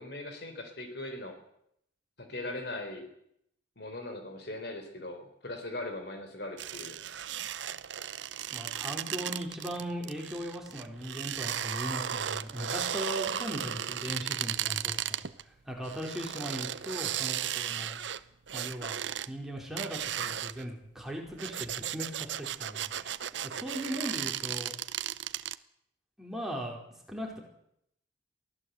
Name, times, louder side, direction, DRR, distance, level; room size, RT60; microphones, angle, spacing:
voice 1, 0.0-1.4 2.2-3.1 3.8-7.0, left 2 dB, 55° left, 6 dB, 3.8 m, -40 dB
sound 1, 6.6-15.4 15.8-19.3 19.8-20.7 21.3-25.6, right 10 dB, 70° right, 0.8 m, -35 dB
voice 2, 8.5-18.0 18.5-24.7 26.2-26.8 27.1-27.4, equal, ahead, -1 dB, 4.8 m, -38 dB
23.5 x 16.0 x 8.2 m, 0.75 s
head